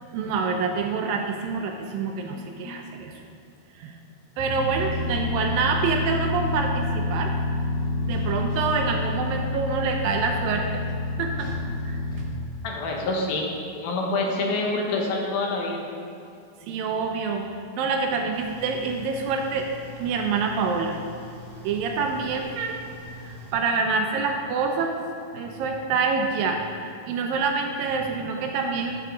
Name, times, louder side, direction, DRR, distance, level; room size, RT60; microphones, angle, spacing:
voice 1, 0.1-3.1 3.8-3.9 4.4-7.3 8.0-10.8 11.2-11.5 11.8-12.0 16.6-17.4 17.8-19.7 20.0-21.0 21.6-22.8 23.2-25.0 25.3-29.0, right 4 dB, 80° right, 3 dB, 2.2 m, -26 dB
voice 2, 2.4-2.8 12.6-13.5 13.7-15.8, left 2 dB, 75° left, -1 dB, 2.9 m, -27 dB
sound 1, 4.4-12.3, left 2 dB, 50° left, 3.4 m, -28 dB
sound 2, 18.3-23.5, left 1 dB, 30° left, 0.4 m, -44 dB
12.5 x 6.7 x 3.8 m, 2.5 s
omnidirectional pair, 4.4 m